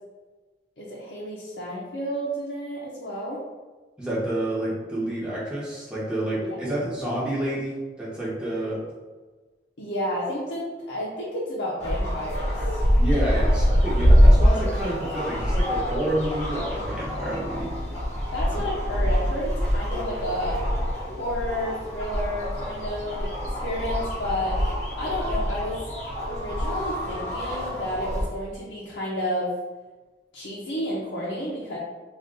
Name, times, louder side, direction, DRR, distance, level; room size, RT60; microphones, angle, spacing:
voice 1, 0.8-3.4 9.8-12.8 18.3-20.6 21.2-23.3 23.6-25.8 26.3-29.5 30.3-31.8, equal, 75° left, -7 dB, 0.6 m, -31 dB
voice 2, 4.0-8.8 13.0-17.7 18.5-18.7, right 1 dB, 5° right, -8 dB, 0.9 m, -29 dB
sound 1, 11.8-28.3, equal, 40° left, 1.0 m, -24 dB
2.6 x 2.4 x 3.6 m, 1.3 s
head